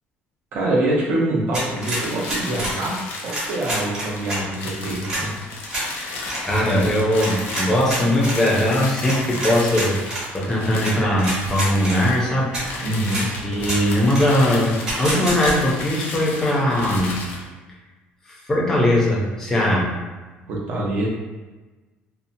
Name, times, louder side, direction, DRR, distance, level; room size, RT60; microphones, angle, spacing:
voice 1, 0.5-5.3 12.8-13.3 20.5-21.1, right 1 dB, 50° right, -4 dB, 0.7 m, -25 dB
sound 1, 1.5-2.8 3.3-4.4 5.0-5.2 5.7-5.9 6.2-6.4 7.2-8.4 9.1-10.2 10.8-10.9 11.2-12.0 12.5-12.6 13.1-13.2 13.6-13.8 14.1-14.3 14.9-15.5, right 1 dB, 30° right, 1.2 m, -27 dB
sound 2, 1.7-17.5, left 3 dB, 60° left, 0.5 m, -34 dB
voice 2, 6.5-10.0 10.3-12.6 13.0-17.2 18.3-19.9, left 1 dB, 10° left, -4 dB, 0.5 m, -20 dB
2.7 x 2.1 x 2.6 m, 1.2 s
cardioid pair, 165°, 4 cm